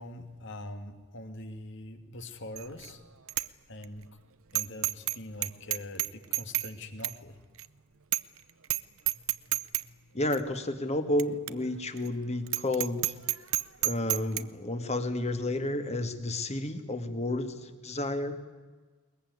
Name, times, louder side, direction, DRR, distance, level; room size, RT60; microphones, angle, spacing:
voice 1, 0.0-3.0 3.7-4.1 4.5-7.4, left 1 dB, 60° left, 7 dB, 2.6 m, -43 dB
Bicycle bell, 2.6-2.9 3.3-3.5 3.8-3.9 4.5-5.2 5.4-6.7 7.0-7.2 7.6-7.7 8.1-8.4 8.6-8.8 9.1-9.8 10.3-10.4 11.2-11.3 11.5-11.6 12.0-12.1 12.5-14.4, right 15 dB, 70° right, 0.8 m, -29 dB
voice 2, 10.1-13.1 13.8-18.5, left 1 dB, 30° left, 8 dB, 2.0 m, -31 dB
22.0 x 21.5 x 9.7 m, 1.4 s
head